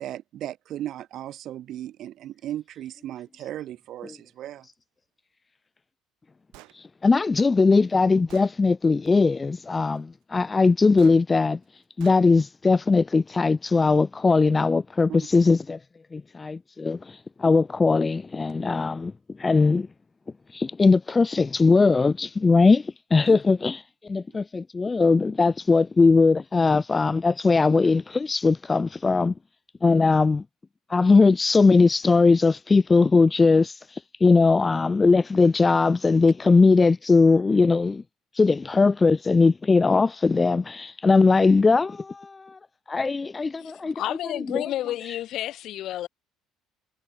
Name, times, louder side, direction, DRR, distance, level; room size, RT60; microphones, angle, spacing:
voice 1, 0.0-4.7 15.1-15.2 23.3-23.4, right 12 dB, 55° right, 4.9 m, -36 dB
Gunshot gunfire, 6.5-6.8 7.7-7.8 8.3-8.5 11.0-11.2 12.0-12.2, right 22 dB, 80° right, 4.1 m, -48 dB
voice 2, 6.8-11.6 12.0-15.8 16.1-19.1 19.4-19.9 20.5-29.3 29.8-30.4 30.9-38.0 38.3-42.6 42.9-43.9 44.5-44.6, left 4 dB, 20° left, 0.7 m, -20 dB
voice 3, 43.6-46.1, left 13 dB, 60° left, 3.1 m, -31 dB
cardioid pair, 110°, 0 cm